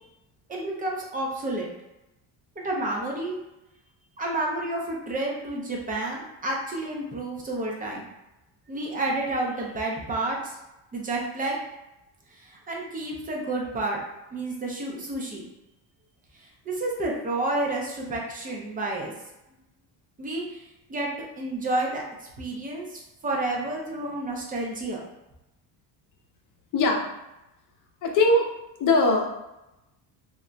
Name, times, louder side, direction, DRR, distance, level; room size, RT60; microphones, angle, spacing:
voice 1, 0.5-1.7 2.6-3.4 4.2-8.1 8.7-10.5 10.9-11.6 12.7-14.0 14.3-15.5 16.7-19.1 20.2-20.6 20.9-21.1 21.4-22.0 22.4-25.0, right 2 dB, 20° right, -2 dB, 0.4 m, -30 dB
voice 2, 26.7-27.0 28.0-28.4 28.8-29.3, left 2 dB, 45° left, 1 dB, 0.5 m, -20 dB
2.3 x 2.1 x 3.8 m, 0.93 s
cardioid pair, 155°, 45 cm